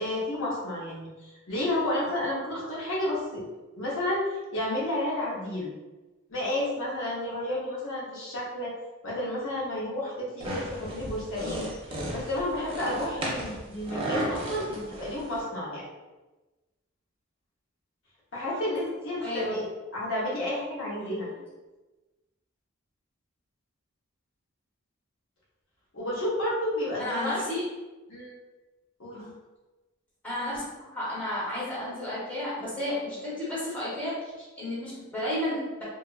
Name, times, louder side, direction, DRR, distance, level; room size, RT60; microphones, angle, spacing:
voice 1, 0.0-3.4 3.8-5.7 6.3-8.7 9.0-11.7 12.1-15.8 18.3-19.6 19.9-21.3 25.9-27.5 28.1-28.4 29.0-29.3, left 1 dB, 70° left, -5 dB, 0.7 m, -31 dB
sound 1, 10.4-15.4, right 1 dB, 25° right, 0.5 m, -34 dB
voice 2, 19.2-19.5 21.0-21.4 27.0-27.6 29.1-29.3 30.2-35.8, left 1 dB, 10° left, -9 dB, 0.8 m, -33 dB
2.9 x 2.3 x 2.3 m, 1.1 s
head